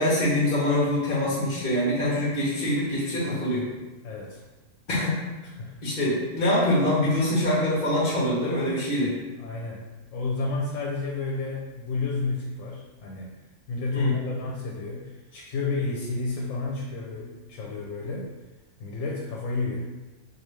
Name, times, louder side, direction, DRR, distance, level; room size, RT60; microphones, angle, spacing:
voice 1, 0.0-3.6 4.9-5.2 5.8-9.1 13.9-14.1, left 1 dB, 45° left, -7 dB, 1.1 m, -24 dB
voice 2, 4.0-4.4 5.6-5.8 9.4-9.8 10.1-13.4 13.7-18.3 18.8-19.9, left 3 dB, 80° left, -2 dB, 1.0 m, -31 dB
4.8 x 2.4 x 3.1 m, 1.2 s
omnidirectional pair, 1.3 m